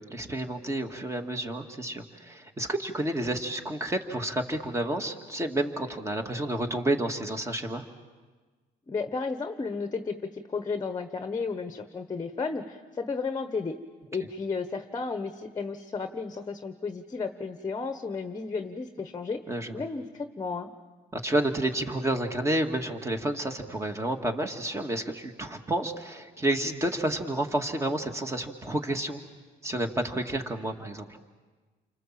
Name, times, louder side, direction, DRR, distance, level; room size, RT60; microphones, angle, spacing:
voice 1, 0.0-7.9 19.5-19.8 21.1-29.2 29.6-31.1, right 1 dB, 15° right, 5 dB, 2.1 m, -30 dB
voice 2, 8.9-13.8 14.1-19.4 19.7-20.7, left 4 dB, 25° left, 8 dB, 1.2 m, -33 dB
29.5 x 25.5 x 7.6 m, 1.4 s
cardioid pair, 110°, 17 cm